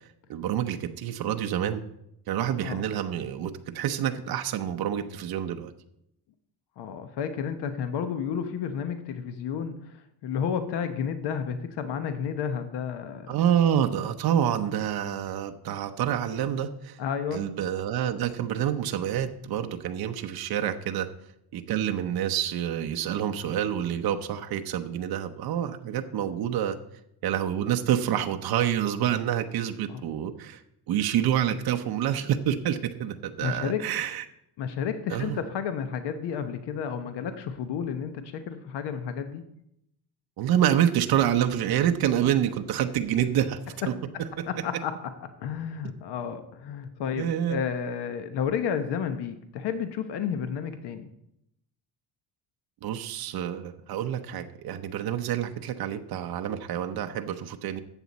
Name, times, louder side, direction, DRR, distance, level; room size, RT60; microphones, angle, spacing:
voice 1, 0.3-1.8 2.3-5.7 13.3-17.0 17.3-21.1 21.5-26.8 27.2-30.6 30.9-34.2 35.1-35.4 40.4-43.6 43.9-44.0 44.2-44.4 47.2-47.6 52.8-57.8, right 10 dB, 65° right, 6 dB, 0.8 m, -27 dB
voice 2, 6.8-13.3 17.0-17.4 29.9-30.0 33.4-33.8 34.6-39.4 44.5-51.1, left 7 dB, 85° left, 8 dB, 1.1 m, -31 dB
14.0 x 8.2 x 4.2 m, 0.79 s
cardioid pair, 175°, 40 cm